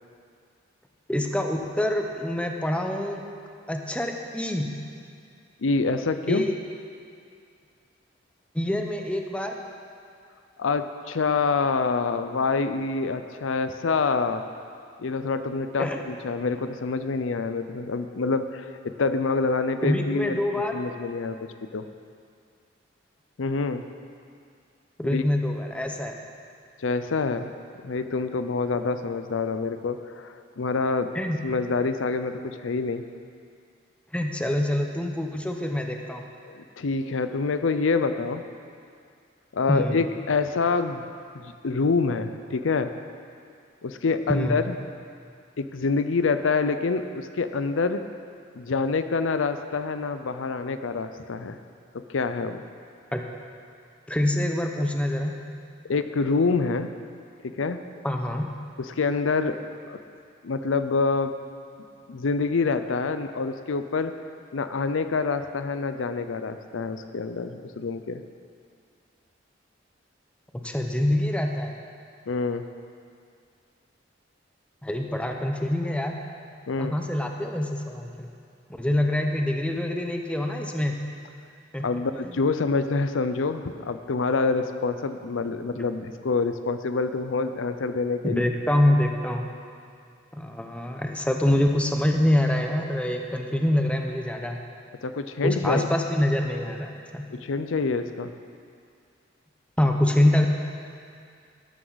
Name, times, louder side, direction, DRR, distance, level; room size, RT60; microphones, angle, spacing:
voice 1, 1.1-3.2 3.7-4.7 6.3-6.5 8.5-9.5 15.8-16.0 19.8-20.8 25.0-26.2 31.1-31.4 34.1-36.3 39.7-40.0 44.3-44.6 53.1-53.2 54.1-55.4 58.0-58.5 70.5-71.7 74.8-76.2 76.8-78.3 78.8-81.0 81.7-82.3 88.2-89.5 90.3-94.6 95.4-97.3 99.8-100.5, left 1 dB, 5° left, 3 dB, 0.8 m, -25 dB
voice 2, 5.6-6.4 10.6-14.4 15.0-20.4 20.7-21.4 21.7-21.9 23.4-23.8 25.0-25.2 26.8-27.5 27.8-31.1 31.4-33.0 36.4-38.4 39.5-41.1 41.3-42.9 43.8-44.8 45.6-48.0 48.5-51.6 51.9-52.6 55.9-56.9 57.4-57.8 58.8-59.6 59.9-60.0 60.4-61.3 62.1-64.1 64.5-68.2 72.3-72.7 76.7-77.0 81.8-88.4 95.0-95.9 97.3-98.3, left 4 dB, 85° left, 10 dB, 0.6 m, -26 dB
12.5 x 12.0 x 4.0 m, 2.3 s
head